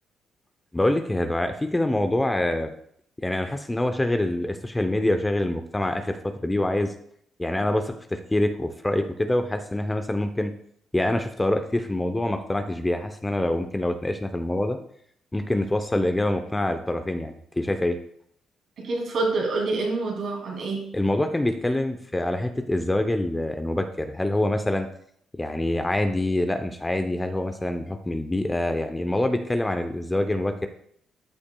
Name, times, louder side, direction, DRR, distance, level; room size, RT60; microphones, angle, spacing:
voice 1, 0.7-2.7 3.2-6.9 7.4-10.5 10.9-14.8 15.3-18.0 20.9-24.9 25.4-30.7, left 1 dB, 15° left, 7 dB, 0.7 m, -25 dB
voice 2, 18.8-20.8, right 3 dB, 65° right, -1 dB, 2.7 m, -26 dB
12.5 x 5.9 x 2.3 m, 0.66 s
cardioid pair, 90°, 0 cm